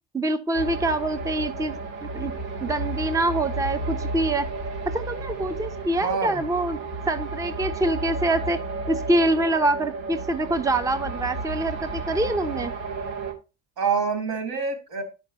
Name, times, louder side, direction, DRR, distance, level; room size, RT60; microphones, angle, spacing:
voice 1, 0.1-1.7 2.0-2.3 2.6-4.5 4.9-6.8 7.1-8.6 8.9-12.7, right 2 dB, 10° right, 0.7 m, -25 dB
sound 1, 0.5-13.3, right 3 dB, 75° right, 2.1 m, -32 dB
voice 2, 6.0-6.4 13.8-15.0, right 5 dB, 55° right, 2.8 m, -26 dB
10.5 x 5.4 x 2.8 m
hypercardioid pair, 65°, 45 cm